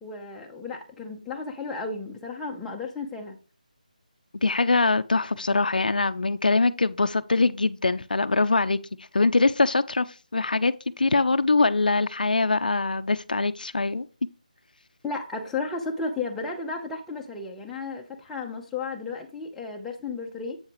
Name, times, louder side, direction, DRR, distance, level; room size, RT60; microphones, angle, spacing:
voice 1, 0.0-3.4 15.0-20.6, left 4 dB, 5° left, 0.7 m, -33 dB
voice 2, 4.4-14.1, left 3 dB, 85° left, 0.5 m, -23 dB
7.8 x 5.6 x 3.0 m
figure-of-eight pair, 165°, 5 cm